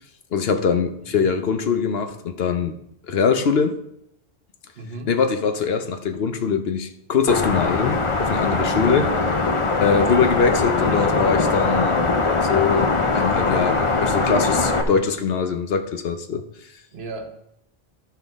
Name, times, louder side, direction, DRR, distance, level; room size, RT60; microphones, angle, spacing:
voice 1, 0.3-2.7 3.1-3.8 5.1-9.2 9.8-12.0 12.5-16.4, left 6 dB, 75° left, 1.0 m, -22 dB
voice 2, 4.8-5.1 10.9-11.9 14.9-15.2 16.9-17.4, right 2 dB, 80° right, 1.3 m, -35 dB
sound 1, 7.3-14.8, left 3 dB, 35° left, 0.7 m, -21 dB
12.5 x 5.8 x 3.6 m
omnidirectional pair, 1.0 m